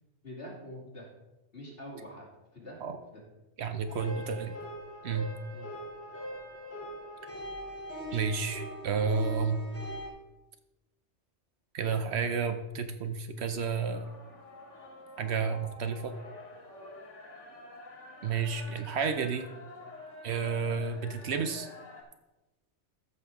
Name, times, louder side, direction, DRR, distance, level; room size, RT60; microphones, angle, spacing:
voice 1, 0.2-1.1 1.5-2.3 2.5-3.2 5.5-5.7, equal, 50° left, -4 dB, 2.9 m, -45 dB
voice 2, 3.6-4.5 5.0-5.3 8.1-9.6 11.7-14.1 15.2-16.1 18.2-19.4 20.2-21.7, right 5 dB, 65° right, 8 dB, 0.9 m, -31 dB
sound 1, 3.9-10.1, equal, 10° left, 2.0 m, -41 dB
sound 2, 13.9-22.0, left 1 dB, 80° left, 2.1 m, -48 dB
14.0 x 6.4 x 3.5 m, 1.0 s
omnidirectional pair, 1.2 m